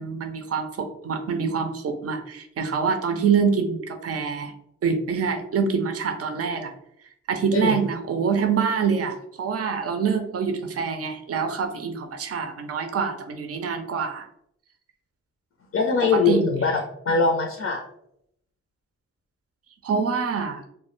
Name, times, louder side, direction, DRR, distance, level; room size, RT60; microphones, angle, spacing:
voice 1, 0.0-4.5 4.8-6.7 7.3-14.3 16.1-16.4 19.8-20.6, right 6 dB, 50° right, 6 dB, 0.5 m, -25 dB
voice 2, 15.7-16.7 17.1-17.8, left 4 dB, 45° left, 2 dB, 0.5 m, -22 dB
2.1 x 2.0 x 3.0 m, 0.72 s
supercardioid pair, 40°, 31 cm